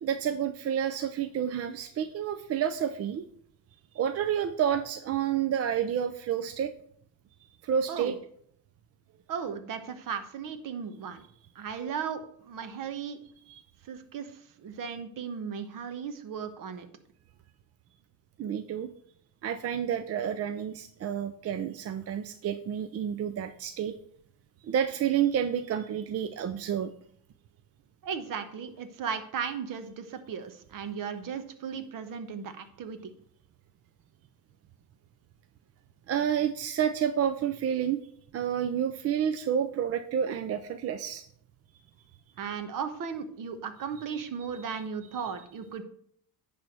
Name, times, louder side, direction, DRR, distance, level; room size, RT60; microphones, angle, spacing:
voice 1, 0.0-3.3 3.9-6.7 7.6-8.1 13.5-13.6 18.4-18.9 19.4-24.0 24.6-26.9 36.1-38.0 38.3-41.2 44.7-44.8, right 9 dB, 40° right, 9 dB, 0.5 m, -29 dB
voice 2, 9.3-11.2 11.5-13.2 13.8-16.9 28.0-33.1 42.4-45.8, right 6 dB, 55° right, 10 dB, 1.2 m, -36 dB
10.5 x 3.5 x 6.7 m, 0.65 s
cardioid pair, 115°, 40 cm